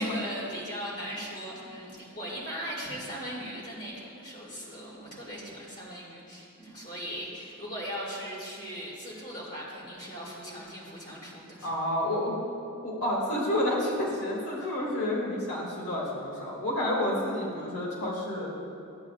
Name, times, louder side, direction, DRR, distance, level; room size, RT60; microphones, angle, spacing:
voice 1, 0.0-11.7, equal, 35° left, -6 dB, 2.2 m, -38 dB
voice 2, 11.6-12.4 12.8-18.5, left 1 dB, 85° left, -4 dB, 2.1 m, -29 dB
13.5 x 8.8 x 2.4 m, 2.6 s
head